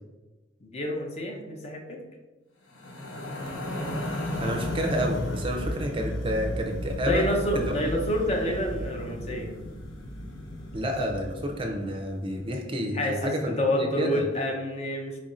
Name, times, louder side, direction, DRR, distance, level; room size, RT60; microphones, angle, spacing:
voice 1, 0.6-2.0 7.0-9.5 12.9-15.2, equal, 35° left, 2 dB, 0.6 m, -28 dB
sound 1, 2.7-12.0, equal, 85° left, 0.7 m, -34 dB
voice 2, 4.4-7.3 7.5-7.9 10.7-14.2, equal, 25° right, 3 dB, 0.4 m, -29 dB
4.3 x 2.5 x 4.1 m, 1.2 s
head